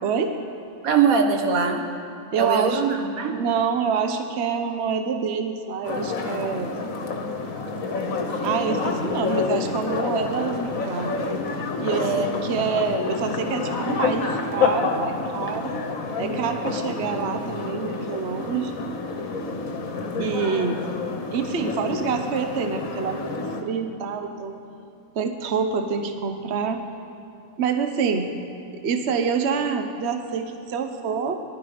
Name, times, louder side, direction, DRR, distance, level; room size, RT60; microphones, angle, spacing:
voice 1, 0.0-0.4 2.3-2.8 3.3-6.8 8.4-11.2 11.8-15.8 16.2-18.7 20.2-20.8 21.3-23.3 23.6-24.6 25.1-26.8 27.6-28.4 28.7-31.4, right 6 dB, 55° right, 6 dB, 1.1 m, -26 dB
voice 2, 0.8-1.9 2.4-3.4 11.9-12.4 16.2-16.4, right 5 dB, 80° right, 4 dB, 1.6 m, -22 dB
sound 1, 5.8-23.6, left 4 dB, 70° left, 1.6 m, -28 dB
19.5 x 11.5 x 5.1 m, 2.7 s
omnidirectional pair, 1.5 m